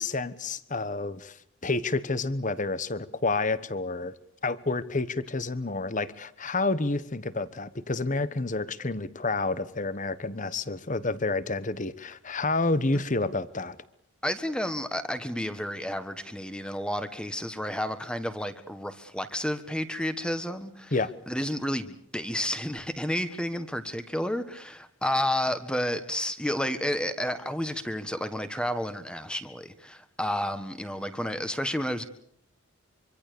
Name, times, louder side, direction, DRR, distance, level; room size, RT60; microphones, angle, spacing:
voice 1, 0.0-1.4 1.6-4.1 4.4-13.8 20.9-21.1, left 3 dB, 35° left, 16 dB, 1.2 m, -29 dB
voice 2, 14.2-20.9 21.3-32.0, equal, 5° left, 10 dB, 1.5 m, -31 dB
25.5 x 25.0 x 6.9 m, 0.68 s
head